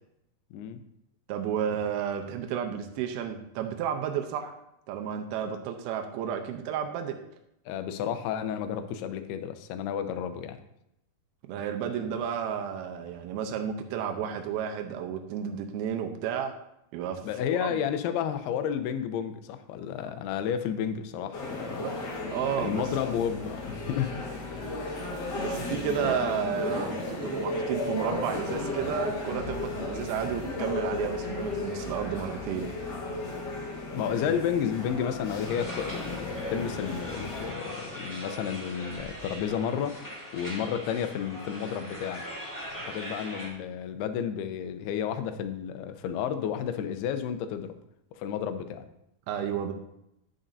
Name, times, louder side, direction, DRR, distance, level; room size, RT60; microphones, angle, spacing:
voice 1, 0.5-0.8 7.7-10.6 17.2-21.8 22.6-24.1 24.5-24.6 33.9-40.0 40.3-42.2 42.7-47.8 48.1-48.9, left 8 dB, 85° left, 9 dB, 2.7 m, -31 dB
voice 2, 1.3-4.5 4.9-7.2 11.5-16.5 16.9-17.2 17.6-17.8 21.8-21.9 22.3-22.8 25.4-32.7 49.3-49.7, right 8 dB, 85° right, 5 dB, 2.6 m, -32 dB
sound 1, 21.3-37.5, left 2 dB, 65° left, 1.0 m, -34 dB
sound 2, 35.4-43.5, equal, 10° left, 0.8 m, -41 dB
11.5 x 8.9 x 2.7 m, 0.80 s
omnidirectional pair, 4.5 m